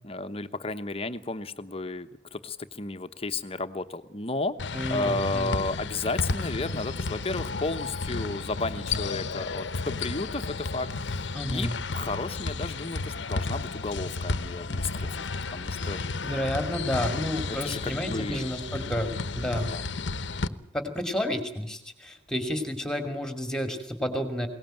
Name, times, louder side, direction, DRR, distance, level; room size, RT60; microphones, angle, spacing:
voice 1, 0.0-4.6 4.9-15.1 15.5-16.0 17.5-18.6 19.7-19.8, left 3 dB, 35° left, 9 dB, 1.0 m, -33 dB
sound 1, 4.6-20.5, left 3 dB, 90° left, 0.9 m, -32 dB
voice 2, 4.7-5.6 11.3-11.7 15.8-19.1 19.3-19.7 20.5-24.5, equal, 5° left, 7 dB, 2.7 m, -31 dB
22.0 x 18.5 x 9.1 m, 0.70 s
head